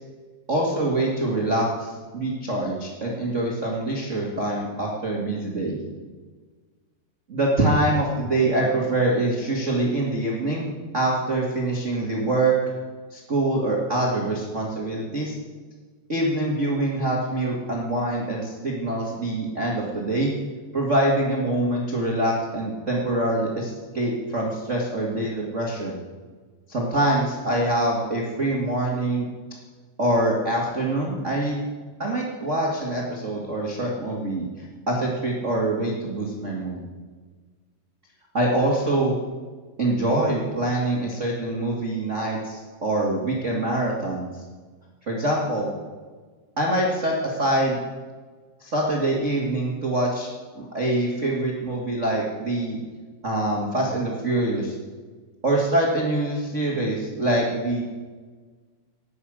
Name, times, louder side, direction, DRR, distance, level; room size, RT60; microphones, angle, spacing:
voice 1, 0.5-5.8 7.3-12.5 13.1-15.3 16.1-20.3 20.7-25.9 26.7-29.3 30.0-31.6 32.0-34.5 34.9-36.8 38.3-39.2 39.8-44.3 45.1-45.7 46.6-47.8 48.6-50.3 50.5-52.8 53.2-54.7 55.4-57.8, right 1 dB, 35° right, -3 dB, 1.2 m, -24 dB
17.5 x 8.4 x 6.4 m, 1.4 s
omnidirectional pair, 4.8 m